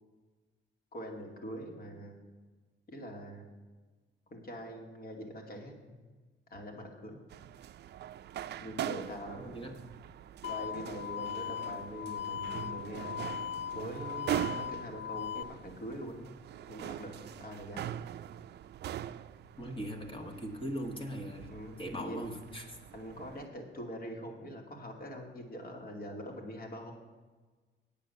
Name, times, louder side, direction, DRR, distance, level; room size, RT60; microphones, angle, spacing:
voice 1, 0.9-2.2 2.9-3.5 4.3-6.0 6.5-7.2 8.5-9.7 10.4-13.2 13.7-16.4 16.7-17.9 21.4-22.3 22.9-26.9, equal, 45° left, 2 dB, 2.5 m, -43 dB
sound 1, 7.3-23.5, right 11 dB, 60° right, 0.4 m, -42 dB
voice 2, 9.4-9.8 19.6-21.5 21.8-22.8, equal, 25° left, 3 dB, 1.6 m, -40 dB
sound 2, 10.4-15.4, left 9 dB, 65° left, 0.5 m, -39 dB
9.0 x 8.6 x 6.8 m, 1.3 s
cardioid pair, 130°, 20 cm